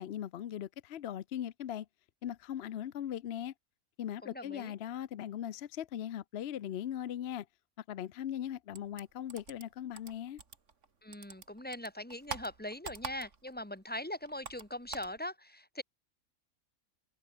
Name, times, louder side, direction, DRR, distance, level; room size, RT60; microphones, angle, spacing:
voice 1, 0.0-1.9 2.2-3.5 4.0-7.5 7.9-10.4, left 10 dB, 55° left, 0.8 m, -39 dB
voice 2, 4.2-4.8 11.0-15.8, left 1 dB, 5° left, 2.2 m, -41 dB
sound 1, 8.7-10.9 11.1-13.6 13.9-15.2, right 5 dB, 60° right, 2.3 m, -45 dB
omnidirectional pair, 1.5 m